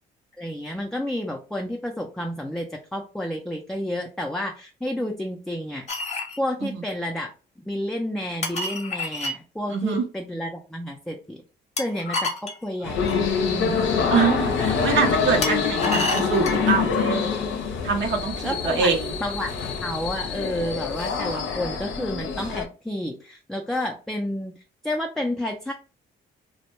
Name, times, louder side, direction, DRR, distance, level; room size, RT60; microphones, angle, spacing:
voice 1, 0.4-5.9 6.4-7.3 7.7-11.4 11.8-14.1 18.4-18.9 19.2-19.5 19.8-24.5 24.8-25.7, left 1 dB, ahead, 0.4 m, -30 dB
sound 1, 5.9-6.4 8.4-9.4 11.8-13.2 15.4-16.7, left 2 dB, 35° left, 0.7 m, -29 dB
voice 2, 9.7-10.0 14.1-17.3 17.8-19.0, right 5 dB, 65° right, 0.6 m, -24 dB
sound 2, 12.8-22.7, left 6 dB, 70° left, 0.6 m, -25 dB
2.1 x 2.0 x 2.9 m
cardioid pair, 90°, 20 cm